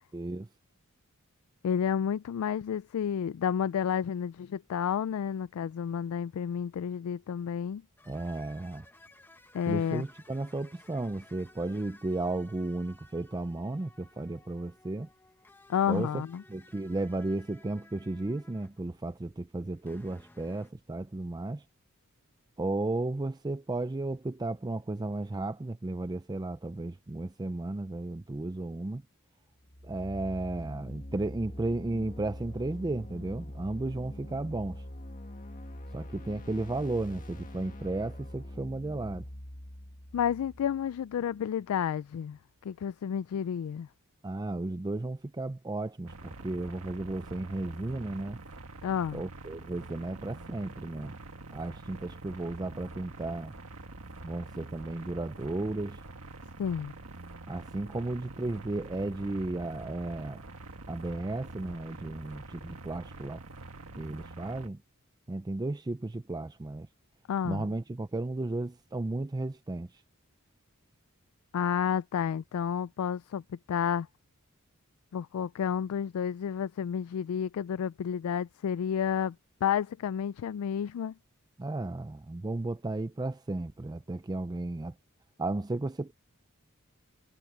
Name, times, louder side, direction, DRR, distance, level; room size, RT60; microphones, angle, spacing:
voice 1, 0.1-0.5 8.1-8.8 9.7-15.1 15.9-16.2 16.5-21.6 22.6-29.0 29.8-34.8 35.9-39.2 44.2-48.4 49.1-51.2 51.5-53.5 54.2-56.0 57.5-60.4 60.9-63.4 64.0-64.8 65.3-66.9 67.4-70.0 81.6-84.9 85.4-86.1, right 2 dB, 20° right, 0.4 m, -34 dB
voice 2, 1.6-7.8 9.5-10.0 15.7-16.4 40.1-43.9 48.8-49.2 56.6-56.9 67.3-67.7 71.5-73.4 73.7-74.1 75.1-79.4 79.6-81.1, left 8 dB, 80° left, 0.3 m, -31 dB
sound 1, 8.0-19.1 19.6-20.7, left 2 dB, 10° left, 1.2 m, -58 dB
sound 2, 29.6-41.4, left 1 dB, 40° left, 1.8 m, -44 dB
sound 3, 46.1-64.7, right 2 dB, 80° right, 1.6 m, -46 dB
head